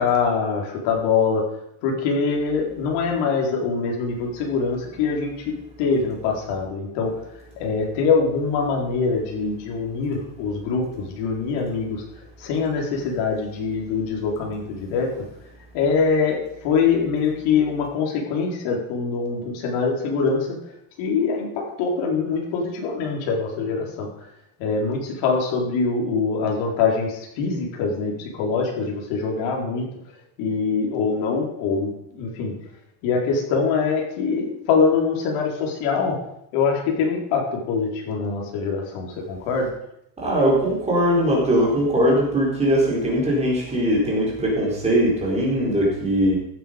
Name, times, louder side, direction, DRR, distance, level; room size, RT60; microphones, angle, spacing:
voice 1, 0.0-1.5 1.8-7.1 7.6-12.0 12.4-15.2 15.7-20.6 21.0-24.1 24.6-29.9 30.4-32.6 33.0-36.2 36.5-39.7, left 5 dB, 80° left, 0 dB, 4.2 m, -23 dB
voice 2, 40.2-46.3, equal, 15° right, -4 dB, 4.2 m, -20 dB
15.5 x 9.1 x 5.2 m, 0.77 s
cardioid pair, 175°, 48 cm